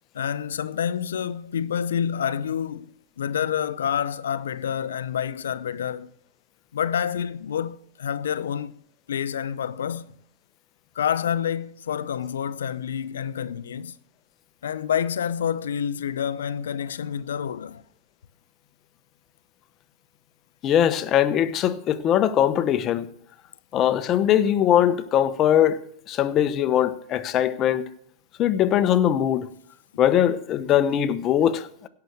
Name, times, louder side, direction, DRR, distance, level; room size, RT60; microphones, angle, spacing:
voice 1, 0.1-2.9 3.2-6.1 6.7-8.7 9.1-10.1 10.9-14.0 14.6-17.8, left 8 dB, 80° left, 0.5 m, -28 dB
voice 2, 20.6-23.1 23.7-25.8 26.1-27.8 28.4-29.5 30.0-31.7, left 10 dB, 40° left, 0.9 m, -21 dB
17.0 x 5.9 x 6.5 m
hypercardioid pair, 95°, 0 cm